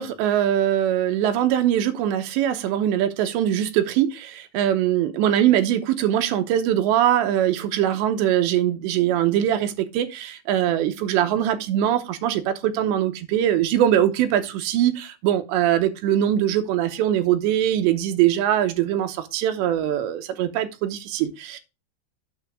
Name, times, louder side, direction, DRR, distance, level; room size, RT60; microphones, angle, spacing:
voice 1, 0.0-21.6, right 11 dB, 80° right, 3.1 m, -22 dB
8.8 x 6.7 x 3.6 m
omnidirectional pair, 5.2 m